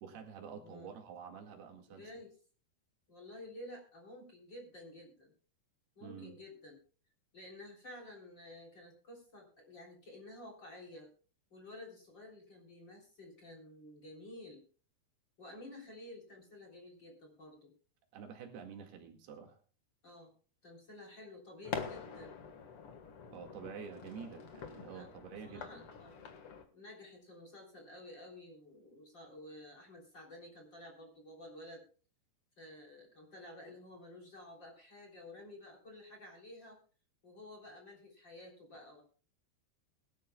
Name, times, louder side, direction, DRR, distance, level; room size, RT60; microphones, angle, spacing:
voice 1, 0.0-2.1 6.0-6.4 18.1-19.6 23.3-25.8, right 7 dB, 70° right, 3 dB, 3.9 m, -48 dB
voice 2, 0.6-0.9 1.9-2.3 3.1-5.3 6.0-6.8 7.3-11.1 11.5-14.6 15.4-17.7 20.0-20.3 20.6-22.4 24.8-25.1 25.4-26.2 26.7-31.8 32.6-36.8 37.2-39.0, left 1 dB, 30° left, 0 dB, 3.7 m, -52 dB
sound 1, 21.6-26.6, left 6 dB, 55° left, 1.6 m, -45 dB
22.5 x 12.0 x 2.3 m, 0.38 s
omnidirectional pair, 4.8 m